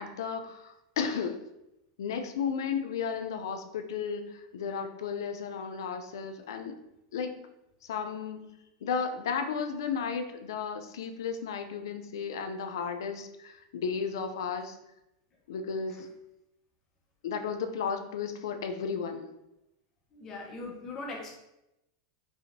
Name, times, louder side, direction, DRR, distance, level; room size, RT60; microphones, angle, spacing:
voice 1, 0.0-1.4 2.0-6.8 7.1-7.5 7.8-8.5 8.8-14.8 15.5-16.1 17.2-19.3, left 6 dB, 80° left, 7 dB, 0.4 m, -34 dB
voice 2, 20.1-21.3, left 3 dB, 20° left, -1 dB, 0.9 m, -40 dB
4.8 x 2.5 x 2.6 m, 0.89 s
supercardioid pair, 155°, 2 cm